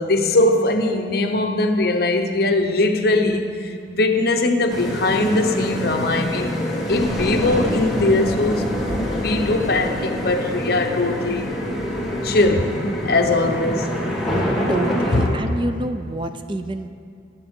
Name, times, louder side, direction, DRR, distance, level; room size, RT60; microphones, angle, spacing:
voice 1, 0.0-6.6 6.9-8.7 9.1-11.5 12.2-12.7 13.0-14.0 15.1-15.3, left 2 dB, 55° left, 0.9 m, -20 dB
sound 1, 4.7-15.3, equal, ahead, 1.8 m, -25 dB
voice 2, 14.2-16.9, right 2 dB, 25° right, 0.4 m, -28 dB
20.5 x 7.9 x 3.7 m
head